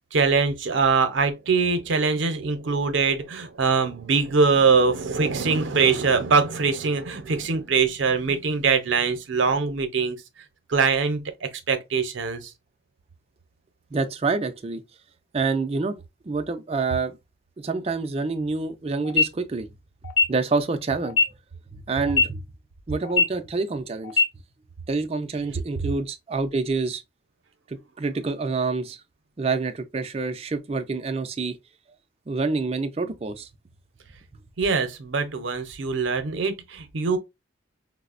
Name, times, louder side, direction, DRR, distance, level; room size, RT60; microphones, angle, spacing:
voice 1, 0.1-10.2 10.7-12.5 34.6-37.2, right 5 dB, 75° right, 0.6 m, -23 dB
voice 2, 13.9-14.8 15.3-17.2 17.6-19.7 20.3-21.2 21.9-22.4 22.9-24.2 24.9-27.0 27.7-29.0 29.4-31.6 32.3-33.5, right 4 dB, 30° right, 0.4 m, -27 dB
sound 1, 19.0-19.2 20.0-20.2 21.0-21.2 22.0-22.2 23.0-23.2 24.0-24.2, left 4 dB, 80° left, 0.9 m, -19 dB
4.8 x 2.0 x 2.4 m
head